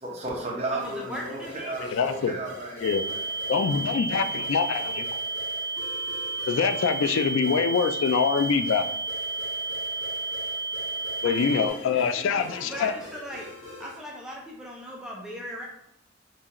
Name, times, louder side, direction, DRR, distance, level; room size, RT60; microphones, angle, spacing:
voice 1, 0.0-3.2, right 2 dB, 30° right, -3 dB, 1.0 m, -34 dB
voice 2, 0.7-2.0 9.7-9.8 11.0-13.5 13.8-15.6, equal, 5° right, -3 dB, 0.5 m, -39 dB
sound 1, 0.8-14.1, left 2 dB, 90° left, 1.4 m, -44 dB
voice 3, 1.8-2.4 2.8-3.0 3.5-5.1 6.5-8.9 11.2-12.9, left 6 dB, 65° left, 10 dB, 0.3 m, -25 dB
sound 2, 2.8-11.7, right 3 dB, 65° right, 0.7 m, -32 dB
4.8 x 2.4 x 2.9 m, 0.73 s
head